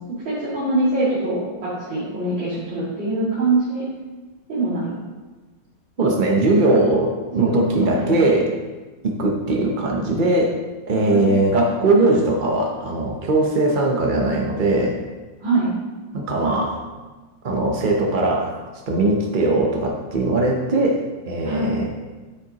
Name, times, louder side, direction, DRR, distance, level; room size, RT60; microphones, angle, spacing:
voice 1, 0.2-3.8 4.5-4.9 7.3-8.2 9.5-9.6 11.1-11.3 15.4-15.7 21.4-21.8, right 2 dB, 80° right, -12 dB, 3.1 m, -23 dB
voice 2, 6.0-8.5 9.0-10.5 10.9-15.0 16.1-16.8 17.4-18.5 18.9-21.9, right 2 dB, 60° right, 0 dB, 0.5 m, -20 dB
9.3 x 8.3 x 2.9 m, 1.3 s
omnidirectional pair, 2.1 m